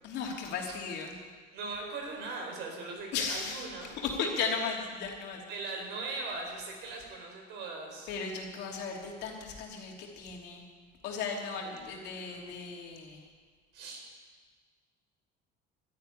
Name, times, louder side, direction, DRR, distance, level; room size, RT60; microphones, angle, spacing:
voice 1, 0.0-1.2 3.1-5.4 8.1-10.6 11.0-13.3, left 5 dB, 65° left, 0 dB, 3.1 m, -36 dB
voice 2, 1.5-3.9 5.5-8.1 11.6-12.5 13.7-14.0, right 3 dB, 65° right, 1 dB, 4.6 m, -40 dB
12.5 x 10.5 x 9.9 m, 1.5 s
cardioid pair, 155°, 19 cm